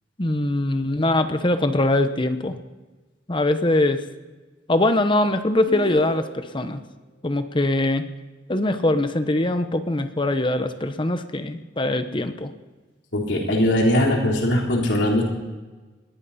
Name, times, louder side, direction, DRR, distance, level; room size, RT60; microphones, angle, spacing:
voice 1, 0.2-2.6 3.3-4.0 4.7-6.8 7.2-8.0 8.5-12.5, left 1 dB, 30° left, 9 dB, 1.0 m, -22 dB
sound 1, 5.7-6.7, right 1 dB, 55° left, 4.0 m, -34 dB
voice 2, 13.1-15.2, left 1 dB, 85° left, -1 dB, 3.8 m, -20 dB
20.5 x 16.0 x 4.3 m, 1.2 s
head